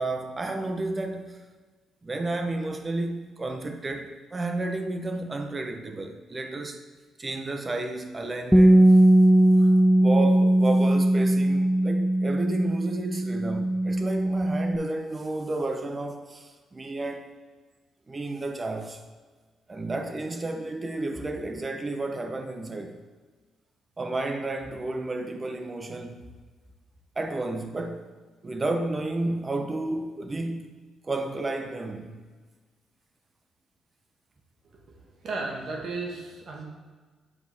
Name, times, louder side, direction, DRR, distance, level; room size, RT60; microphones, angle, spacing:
voice 1, 0.0-1.5 2.0-6.8 7.2-9.0 9.6-17.3 18.1-19.0 19.7-23.0 24.0-26.3 27.2-28.1 28.4-30.7 31.0-32.2, right 2 dB, 25° right, 0.8 m, -32 dB
Bass guitar, 8.5-14.8, right 1 dB, ahead, 0.3 m, -19 dB
voice 2, 34.7-36.6, right 3 dB, 55° right, 1.5 m, -35 dB
8.3 x 4.8 x 3.5 m
cardioid pair, 90°, 0 cm